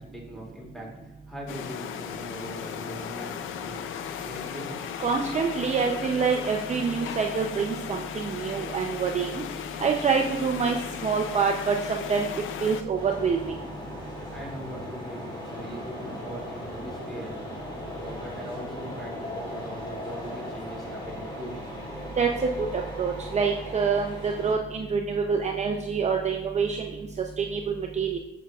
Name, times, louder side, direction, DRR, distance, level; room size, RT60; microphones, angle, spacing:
voice 1, 0.0-4.7 14.0-17.4 17.9-21.7, equal, ahead, -3 dB, 2.4 m, -41 dB
sound 1, 1.5-12.8, left 8 dB, 85° left, 0.5 m, -36 dB
voice 2, 5.0-9.3 9.8-10.8 11.0-12.3 12.6-13.5 22.2-22.3 22.6-27.1 27.4-28.2, right 5 dB, 35° right, 2 dB, 0.6 m, -26 dB
sound 2, 12.9-24.6, left 1 dB, 20° left, 2.1 m, -38 dB
7.2 x 7.0 x 2.4 m, 0.92 s
cardioid pair, 90°, 20 cm